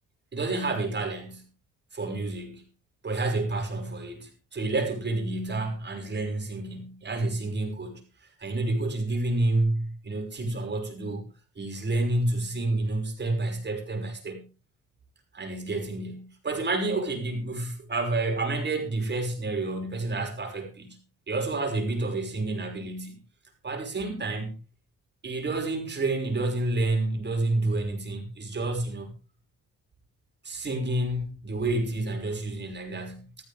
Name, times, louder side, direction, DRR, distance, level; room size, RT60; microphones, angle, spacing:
voice 1, 0.3-1.4 1.9-2.6 3.0-8.0 8.4-11.2 11.6-14.4 15.3-21.0 21.3-23.2 23.6-24.6 25.2-29.1 30.4-33.4, right 2 dB, 35° right, 5.7 m, -29 dB
15.5 x 14.5 x 3.5 m
cardioid pair, 90°, 30 cm